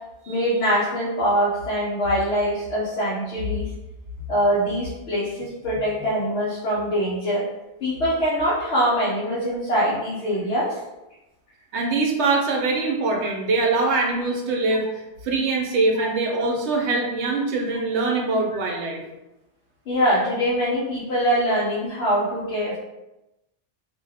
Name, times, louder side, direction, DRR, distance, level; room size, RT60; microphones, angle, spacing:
voice 1, 0.3-3.7 4.3-7.5 7.8-10.8 16.0-16.1 19.9-22.8, equal, 65° left, -7 dB, 1.0 m, -23 dB
voice 2, 11.7-14.9 15.2-19.0, right 3 dB, 70° right, 0 dB, 0.9 m, -23 dB
2.6 x 2.2 x 3.3 m, 0.95 s
omnidirectional pair, 1.2 m